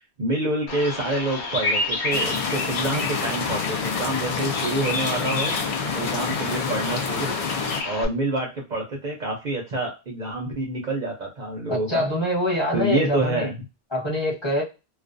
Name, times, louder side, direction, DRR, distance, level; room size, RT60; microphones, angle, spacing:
voice 1, 0.2-5.6 5.9-7.4 7.8-12.1 12.7-13.6, right 2 dB, 50° right, -1 dB, 0.7 m, -27 dB
Bird vocalization bird call bird song, 0.7-8.1, left 3 dB, 85° left, 1.0 m, -30 dB
sound 1, 2.1-7.8, left 5 dB, 60° left, 0.3 m, -28 dB
voice 2, 11.7-13.5 13.9-14.6, left 1 dB, 25° left, -4 dB, 1.0 m, -24 dB
2.3 x 2.2 x 2.4 m, 0.27 s
omnidirectional pair, 1.1 m